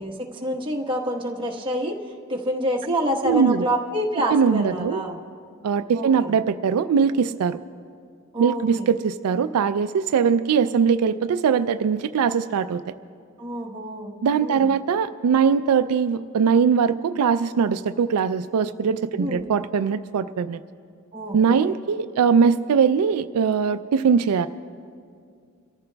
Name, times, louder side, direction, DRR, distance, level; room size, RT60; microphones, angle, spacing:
voice 1, 0.0-2.0 2.3-5.2 5.9-6.3 8.3-8.9 13.4-14.7 19.2-19.5 21.1-21.7, equal, 20° right, -1 dB, 1.2 m, -27 dB
voice 2, 3.2-3.7 4.3-5.0 5.6-7.6 8.4-12.8 14.2-20.6 21.3-24.5, right 6 dB, 85° right, 10 dB, 0.4 m, -21 dB
28.5 x 14.5 x 2.3 m, 2.2 s
head